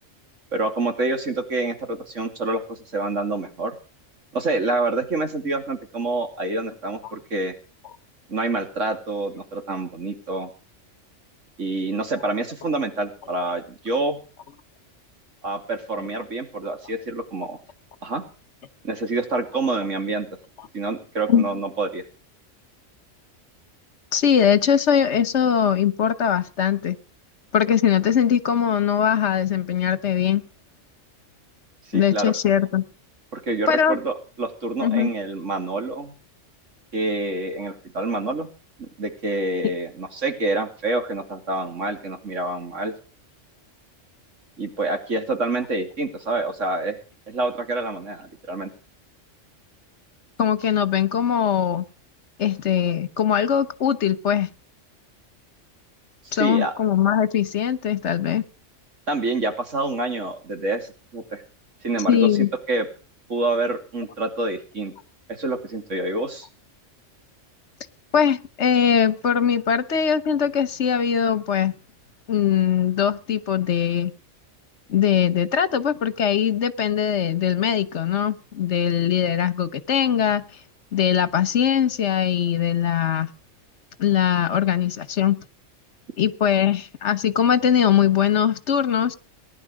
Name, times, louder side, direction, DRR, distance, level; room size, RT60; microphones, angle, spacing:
voice 1, 0.5-3.7 4.3-7.5 8.3-10.5 11.6-14.2 15.4-17.6 18.0-18.2 18.8-20.3 20.7-22.0 31.9-32.3 33.3-36.1 36.9-38.5 38.8-42.9 44.6-47.0 47.3-48.7 56.2-56.7 59.1-61.4 61.8-62.3 62.7-62.9 63.3-64.9 65.3-66.5, right 2 dB, 80° right, 5 dB, 3.1 m, -27 dB
voice 2, 24.1-27.0 27.5-30.4 31.9-32.8 33.7-34.0 34.8-35.1 50.4-51.8 52.4-54.5 56.3-58.4 62.1-62.5 68.1-71.7 72.3-74.1 74.9-80.4 80.9-83.3 84.0-85.4 86.2-89.1, left 8 dB, 65° left, 15 dB, 1.4 m, -21 dB
19.5 x 11.0 x 6.4 m, 0.37 s
omnidirectional pair, 1.3 m